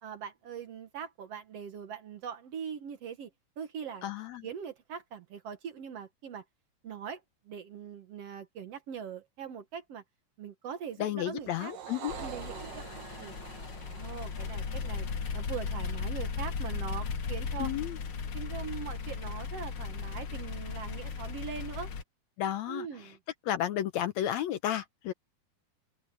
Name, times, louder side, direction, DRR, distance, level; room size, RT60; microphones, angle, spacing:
voice 1, 0.0-3.3 3.6-4.1 4.4-6.4 6.8-7.2 7.5-10.0 10.4-11.7 12.2-13.4 13.8-15.1 15.3-17.7 18.3-21.9 22.7-23.2, right 7 dB, 60° right, 2.0 m, -41 dB
voice 2, 4.0-4.5 11.0-12.2 17.6-18.0 22.4-23.1 23.5-25.1, left 11 dB, 75° left, 1.8 m, -32 dB
sound 1, 11.4-16.0, right 9 dB, 80° right, 3.2 m, -46 dB
sound 2, 12.1-22.0, left 5 dB, 50° left, 1.9 m, -36 dB
open air
omnidirectional pair, 3.7 m